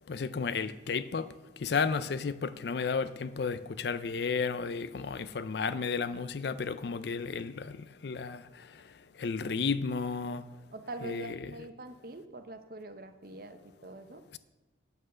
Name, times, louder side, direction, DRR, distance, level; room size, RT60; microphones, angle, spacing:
voice 1, 0.1-1.3 1.6-8.4 9.2-10.4 11.0-11.5, left 5 dB, 60° left, 0.4 m, -33 dB
voice 2, 10.7-14.2, right 2 dB, 50° right, 0.8 m, -44 dB
8.7 x 6.9 x 6.3 m
head